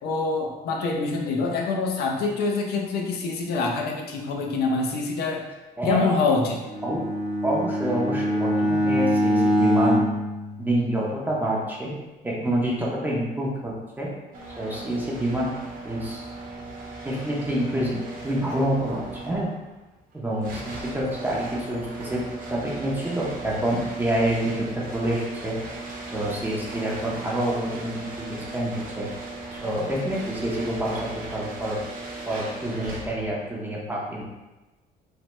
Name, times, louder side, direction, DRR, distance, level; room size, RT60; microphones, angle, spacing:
voice 1, 0.0-5.5 5.9-6.7, left 3 dB, 70° left, 1 dB, 0.6 m, -25 dB
voice 2, 5.8-6.1 6.8-7.0 7.4-10.1 10.6-11.9 12.2-14.1 14.6-15.6 15.8-16.2 17.0-19.5 20.1-22.2 22.5-24.7 24.9-25.6 26.1-29.1 29.5-31.8 32.3-34.2, right 1 dB, 10° right, -4 dB, 0.6 m, -27 dB
Bowed string instrument, 6.6-11.2, equal, 85° right, 0.7 m, -24 dB
sound 1, 14.3-33.4, right 2 dB, 55° right, 0.8 m, -37 dB
3.2 x 2.1 x 3.0 m, 1.1 s
cardioid pair, 110°, 17 cm